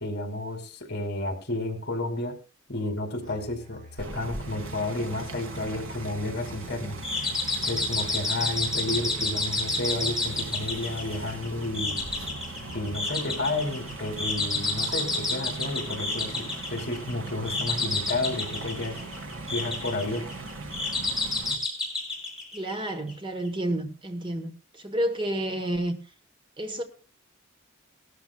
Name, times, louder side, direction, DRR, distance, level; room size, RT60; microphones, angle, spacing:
voice 1, 0.0-2.3 2.7-7.0 7.7-12.0 12.7-19.0 19.5-20.2, left 2 dB, 50° left, 2.4 m, -31 dB
Musical instrument, 3.2-13.2, left 1 dB, 40° right, 2.3 m, -47 dB
sound 1, 4.0-21.5, right 3 dB, 70° right, 2.1 m, -39 dB
sound 2, 7.0-23.1, left 3 dB, 5° right, 3.6 m, -30 dB
voice 2, 22.5-26.0 26.6-26.8, right 1 dB, 25° right, 1.2 m, -30 dB
18.5 x 13.0 x 2.3 m
head